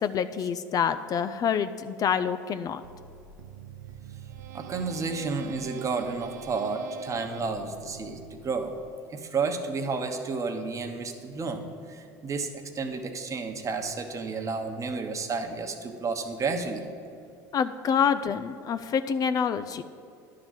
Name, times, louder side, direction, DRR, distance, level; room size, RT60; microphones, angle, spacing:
voice 1, 0.0-2.8 17.5-19.8, left 7 dB, 40° left, 11 dB, 0.4 m, -27 dB
sound 1, 2.8-9.1, right 7 dB, 85° right, 0.4 m, -44 dB
voice 2, 4.5-8.7 9.1-16.8, right 4 dB, 35° right, 5 dB, 1.0 m, -31 dB
10.5 x 3.8 x 7.1 m, 2.5 s
hypercardioid pair, 75°, 9 cm